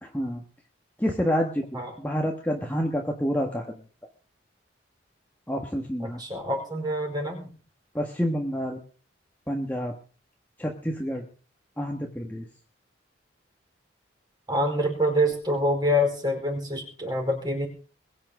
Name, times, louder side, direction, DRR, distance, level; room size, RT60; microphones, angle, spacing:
voice 1, 1.0-3.7 5.5-6.2 7.9-8.8 9.5-9.9 10.6-11.2 11.8-12.5, equal, 10° left, 1 dB, 1.5 m, -28 dB
voice 2, 6.2-7.5 14.5-17.7, equal, 20° right, 2 dB, 4.8 m, -26 dB
22.0 x 8.8 x 5.0 m, 0.39 s
head